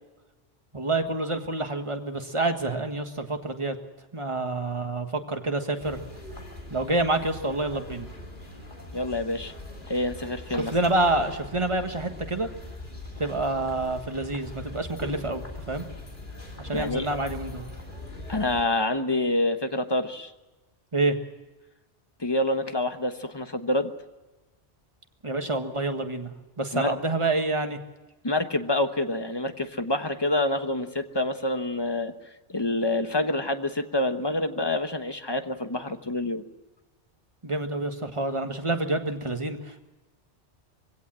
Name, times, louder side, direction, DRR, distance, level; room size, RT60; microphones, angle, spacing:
voice 1, 0.7-3.8 4.1-6.0 6.7-8.1 10.7-12.5 13.2-15.8 16.6-17.7 20.9-21.2 25.2-26.3 26.6-27.8 37.4-39.8, right 2 dB, 25° right, 5 dB, 1.6 m, -27 dB
sound 1, 5.8-18.6, left 2 dB, 45° left, 3.5 m, -41 dB
voice 2, 8.9-9.5 9.9-10.7 16.7-17.1 18.3-20.3 22.2-23.9 26.7-26.9 28.2-32.1 32.5-36.4, left 2 dB, 25° left, 8 dB, 1.1 m, -27 dB
22.5 x 17.0 x 7.6 m, 1.1 s
omnidirectional pair, 1.2 m